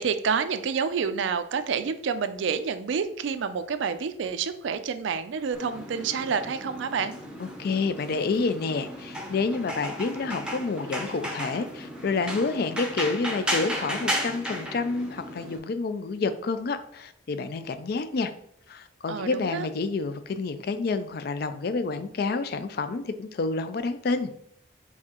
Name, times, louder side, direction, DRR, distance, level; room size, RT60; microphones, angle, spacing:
voice 1, 0.0-7.1 19.1-19.7, right 6 dB, 75° right, 11 dB, 0.4 m, -28 dB
sound 1, 5.5-15.6, equal, 5° right, 0.6 m, -34 dB
voice 2, 7.4-18.3 18.7-24.3, left 4 dB, 55° left, 11 dB, 0.4 m, -29 dB
4.7 x 3.5 x 2.9 m, 0.69 s
head